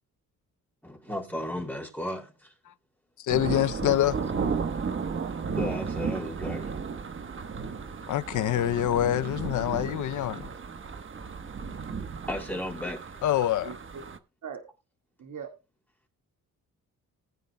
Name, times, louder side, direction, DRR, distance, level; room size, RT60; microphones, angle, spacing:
voice 1, 0.8-2.5 5.5-6.8 12.3-13.2, left 1 dB, 5° left, 3.6 m, -35 dB
voice 2, 3.2-4.2 8.1-10.5 13.2-13.7, left 12 dB, 65° left, 0.6 m, -26 dB
sound 1, 3.3-14.2, right 5 dB, 40° right, 1.1 m, -34 dB
voice 3, 7.4-8.0 13.6-14.0 14.4-14.7 15.2-15.5, right 7 dB, 65° right, 1.9 m, -43 dB
20.5 x 9.1 x 2.2 m
cardioid pair, 120°, 33 cm